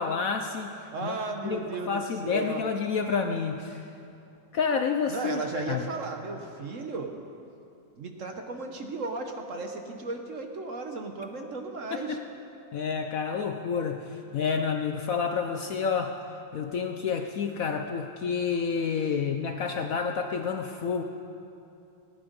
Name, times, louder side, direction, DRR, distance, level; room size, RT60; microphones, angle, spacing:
voice 1, 0.0-1.6 1.9-3.9 4.5-5.9 11.9-12.2 12.7-16.2 16.5-21.0, left 6 dB, 65° left, 5 dB, 0.9 m, -29 dB
voice 2, 0.9-2.7 5.1-7.1 8.0-12.2, right 3 dB, 50° right, 4 dB, 1.2 m, -35 dB
18.5 x 11.0 x 5.2 m, 2.7 s
omnidirectional pair, 2.0 m